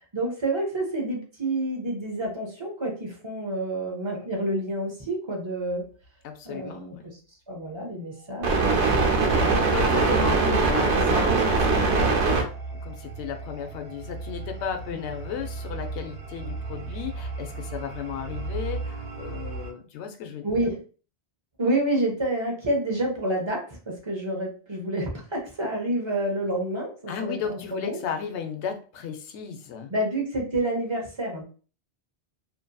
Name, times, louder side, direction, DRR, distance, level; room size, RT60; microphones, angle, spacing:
voice 1, 0.0-5.9 6.4-7.2 7.5-10.4 20.4-20.8 21.6-28.0 29.9-31.4, right 1 dB, 30° right, 0 dB, 0.6 m, -29 dB
voice 2, 6.2-7.0 9.5-12.4 12.7-20.4 27.1-29.9, left 7 dB, 90° left, 5 dB, 0.9 m, -34 dB
sound 1, 8.4-19.7, right 3 dB, 90° right, 1.1 m, -25 dB
2.7 x 2.5 x 2.2 m, 0.38 s
omnidirectional pair, 1.1 m